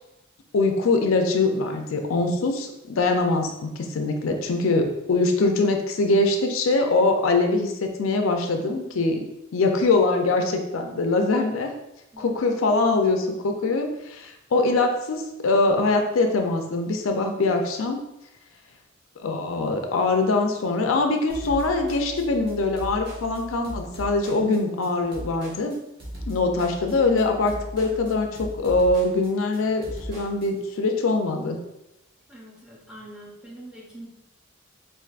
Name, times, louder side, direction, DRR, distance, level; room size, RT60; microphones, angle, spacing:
voice 1, 0.5-9.2 9.5-11.7 12.2-18.0 19.2-25.8 26.3-31.6, left 3 dB, 85° left, 4 dB, 0.5 m, -23 dB
sound 1, 21.3-30.5, equal, 55° right, 1.1 m, -38 dB
voice 2, 32.3-34.1, right 1 dB, 5° right, -4 dB, 0.7 m, -44 dB
4.5 x 2.5 x 2.4 m, 0.89 s
head